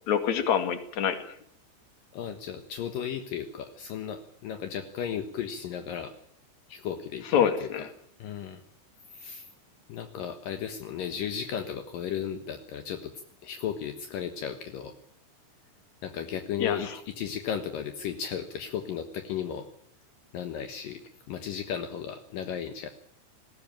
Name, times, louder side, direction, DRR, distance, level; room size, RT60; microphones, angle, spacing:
voice 1, 0.1-1.3 7.3-7.9 16.6-16.8, left 8 dB, 50° left, 9 dB, 2.6 m, -26 dB
voice 2, 2.1-6.1 6.7-7.9 8.2-8.6 9.1-9.5 9.9-14.9 16.0-19.7 20.3-21.0 21.3-22.9, left 8 dB, 70° left, 7 dB, 2.1 m, -35 dB
20.5 x 16.5 x 9.0 m, 0.66 s
omnidirectional pair, 5.9 m